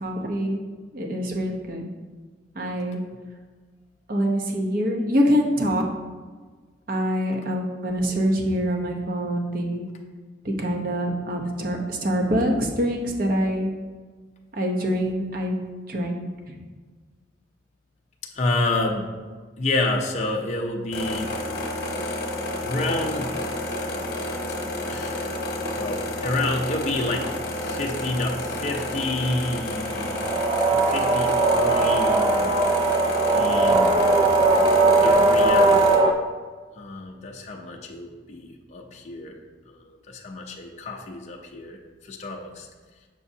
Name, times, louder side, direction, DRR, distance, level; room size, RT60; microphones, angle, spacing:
voice 1, 0.0-0.6 0.9-1.9 2.5-3.0 4.1-5.8 6.9-9.8 10.4-13.7 14.5-15.5 15.9-16.6, equal, 50° right, 1 dB, 0.8 m, -25 dB
voice 2, 18.3-19.1 19.6-21.3 21.7-23.3 24.9-25.3 25.7-27.3 27.6-30.2 30.6-32.6 33.3-34.1 35.0-36.0 36.8-39.4 39.7-42.7, left 2 dB, 35° left, 1 dB, 0.5 m, -29 dB
sound 1, 20.9-36.0, left 1 dB, 55° left, 1.0 m, -30 dB
sound 2, 30.0-36.1, right 2 dB, 25° right, 0.4 m, -19 dB
6.8 x 6.0 x 2.7 m, 1.4 s
head